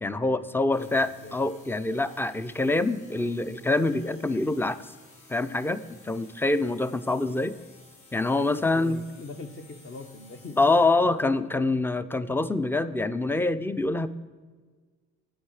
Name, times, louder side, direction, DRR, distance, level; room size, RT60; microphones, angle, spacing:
voice 1, 0.0-4.8 5.3-7.5 8.1-9.0 10.6-14.1, left 2 dB, 5° left, 14 dB, 0.4 m, -25 dB
sound 1, 0.7-11.3, left 2 dB, 75° left, 2.8 m, -55 dB
voice 2, 0.8-1.4 8.5-11.2, left 3 dB, 40° left, 7 dB, 1.1 m, -42 dB
10.0 x 7.9 x 4.8 m, 1.5 s
cardioid pair, 90°, 30 cm